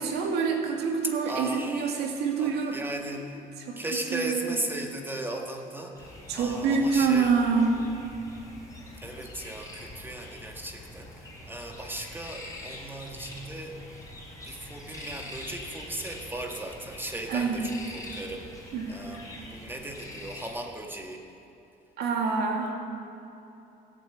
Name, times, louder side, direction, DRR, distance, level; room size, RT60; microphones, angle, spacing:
voice 1, 0.0-2.8 3.7-3.8 4.1-4.6 6.3-7.8 17.3-17.7 18.7-18.9 22.0-22.7, right 5 dB, 80° right, 2 dB, 2.2 m, -26 dB
voice 2, 1.2-2.0 2.4-3.4 3.8-6.1 6.3-7.3 9.0-13.8 14.4-18.5 18.9-21.2, right 1 dB, 15° right, 2 dB, 1.8 m, -37 dB
sound 1, 6.0-20.5, left 1 dB, 20° left, 4.2 m, -44 dB
16.5 x 8.4 x 8.1 m, 3.0 s
cardioid pair, 110°, 17 cm